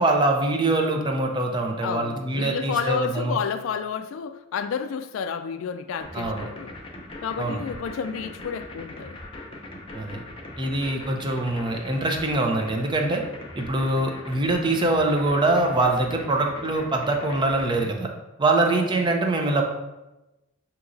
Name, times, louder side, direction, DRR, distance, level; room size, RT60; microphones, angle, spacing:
voice 1, 0.0-3.4 6.1-6.5 7.4-7.6 9.9-10.2 10.6-13.2 13.6-18.1 18.4-19.6, right 2 dB, 25° right, 3 dB, 0.5 m, -23 dB
voice 2, 1.8-6.7 7.2-9.2 18.7-19.1, left 6 dB, 75° left, 10 dB, 0.3 m, -30 dB
sound 1, 6.0-17.9, left 2 dB, 25° left, 0.6 m, -40 dB
6.1 x 2.9 x 2.6 m, 1.0 s
head